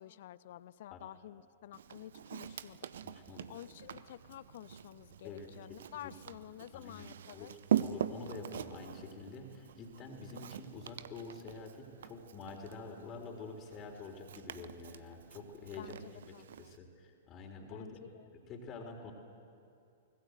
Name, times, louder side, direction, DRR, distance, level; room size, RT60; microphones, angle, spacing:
voice 1, 0.0-2.8 3.5-7.5 15.8-16.5 17.7-18.3, left 13 dB, 55° left, 19 dB, 0.6 m, -50 dB
Walk footsteps, 1.7-16.8, right 9 dB, 60° right, 0.8 m, -42 dB
voice 2, 3.0-3.5 5.2-5.5 5.9-6.1 6.7-18.0 18.5-19.1, left 3 dB, 30° left, 3 dB, 3.8 m, -47 dB
24.5 x 19.5 x 8.1 m, 2.5 s
figure-of-eight pair, 105°, 0 cm